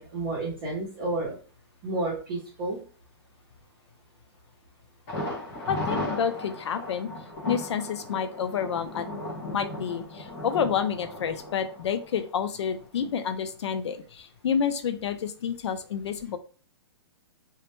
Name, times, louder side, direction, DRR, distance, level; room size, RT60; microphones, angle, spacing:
voice 1, 0.0-1.4 1.8-2.8, right 2 dB, 25° right, -7 dB, 0.6 m, -31 dB
Thunder, 5.1-12.8 13.1-13.2 13.6-13.7, left 1 dB, 15° left, 0.4 m, -36 dB
voice 2, 5.7-7.1 7.5-9.1 9.5-16.4, left 7 dB, 90° left, 10 dB, 0.4 m, -29 dB
2.1 x 2.1 x 2.9 m, 0.38 s
hypercardioid pair, 175°, 14 cm